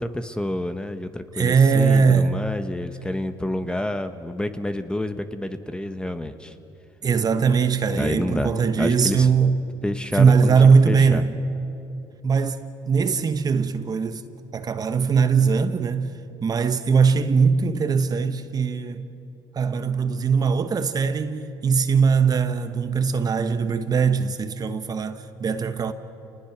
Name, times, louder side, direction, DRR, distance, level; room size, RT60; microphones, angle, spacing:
voice 1, 0.0-6.5 7.9-9.3 9.8-11.2, left 1 dB, 10° left, 1.2 m, -29 dB
voice 2, 1.3-2.4 7.0-9.6 10.1-11.4 12.2-12.6 12.8-14.2 14.5-16.1 16.4-19.1 19.5-25.9, right 5 dB, 40° right, 1.2 m, -20 dB
29.0 x 19.5 x 6.0 m
supercardioid pair, 75°, 10 cm